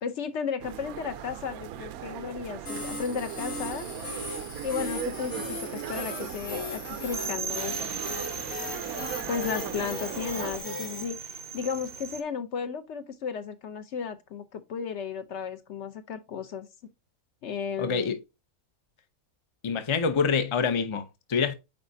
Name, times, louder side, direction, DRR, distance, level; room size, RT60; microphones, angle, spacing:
voice 1, 0.0-3.8 4.6-7.9 9.3-16.7 17.4-18.2, left 6 dB, 60° left, 0.9 m, -34 dB
sound 1, 0.6-10.6, right 11 dB, 80° right, 1.0 m, -38 dB
sound 2, 2.7-11.0, left 2 dB, 85° left, 2.3 m, -37 dB
sound 3, 7.1-12.2, right 7 dB, 55° right, 0.7 m, -38 dB
voice 2, 17.8-18.2 19.6-21.5, left 5 dB, 40° left, 0.4 m, -26 dB
8.9 x 4.2 x 2.6 m
omnidirectional pair, 1.5 m